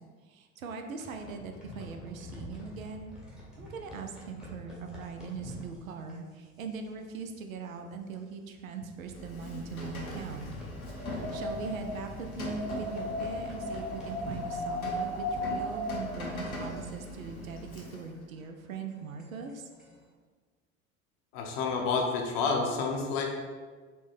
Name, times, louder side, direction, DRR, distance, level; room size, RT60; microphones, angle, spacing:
voice 1, 0.3-3.1 3.6-10.5 10.9-19.6, right 5 dB, 75° right, 5 dB, 0.5 m, -41 dB
sound 1, 0.9-7.1 7.4-7.6 7.9-8.0 8.6-8.8 9.4-15.2 15.4-20.1, left 1 dB, ahead, 1.0 m, -47 dB
Rain, 9.0-18.3, left 1 dB, 85° left, 0.7 m, -42 dB
Wind, 10.8-16.8, left 1 dB, 35° right, 0.7 m, -36 dB
voice 2, 21.3-23.2, left 4 dB, 45° left, 1 dB, 0.6 m, -29 dB
4.1 x 2.2 x 3.2 m, 1.5 s
figure-of-eight pair, 75°, 42 cm